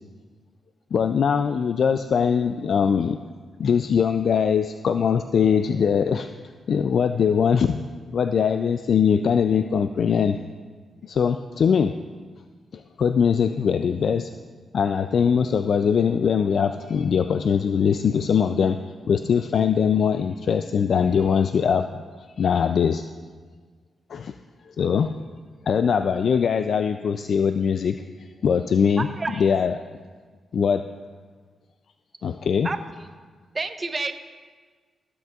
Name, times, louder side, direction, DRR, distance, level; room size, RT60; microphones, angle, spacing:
voice 1, 0.9-3.2 3.6-6.3 6.7-7.8 8.1-10.4 11.0-11.9 12.7-14.3 14.7-22.0 22.4-23.1 24.1-24.3 24.7-25.1 25.7-28.0 28.4-29.1 29.4-29.8 30.5-30.8 32.2-32.7, left 7 dB, 70° left, 8 dB, 0.3 m, -21 dB
voice 2, 29.0-29.4 32.6-32.8 33.5-34.1, right 3 dB, 35° right, 8 dB, 0.8 m, -28 dB
17.5 x 8.0 x 2.4 m, 1.5 s
cardioid pair, 55°, 0 cm